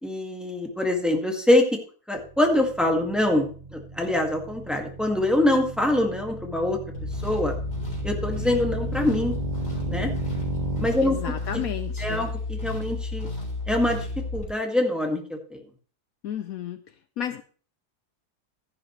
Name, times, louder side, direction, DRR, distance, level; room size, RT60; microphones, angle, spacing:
voice 1, 0.0-1.6 2.1-6.8 7.2-7.5 8.0-9.3 9.9-10.1 10.8-11.3 12.0-13.3 13.7-15.6, left 1 dB, ahead, 2 dB, 1.9 m, -24 dB
sound 1, 2.2-10.9, right 3 dB, 25° right, 1.9 m, -35 dB
sound 2, 6.9-14.5, left 2 dB, 90° left, 4.9 m, -32 dB
voice 2, 11.0-12.2 16.2-16.8 17.2-17.4, left 10 dB, 70° left, 10 dB, 1.0 m, -32 dB
13.5 x 10.5 x 3.2 m, 0.42 s
omnidirectional pair, 1.7 m